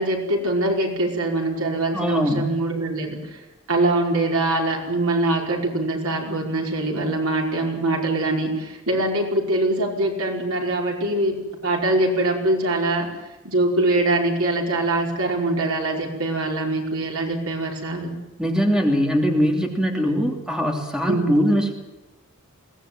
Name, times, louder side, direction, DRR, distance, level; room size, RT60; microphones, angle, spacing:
voice 1, 0.0-3.4 3.7-11.4 11.6-13.1 13.4-18.1 21.0-21.4, right 2 dB, 75° right, 1 dB, 5.1 m, -23 dB
voice 2, 1.9-2.5 18.4-21.7, equal, 5° right, 2 dB, 2.9 m, -21 dB
22.0 x 18.5 x 9.1 m, 1.0 s
head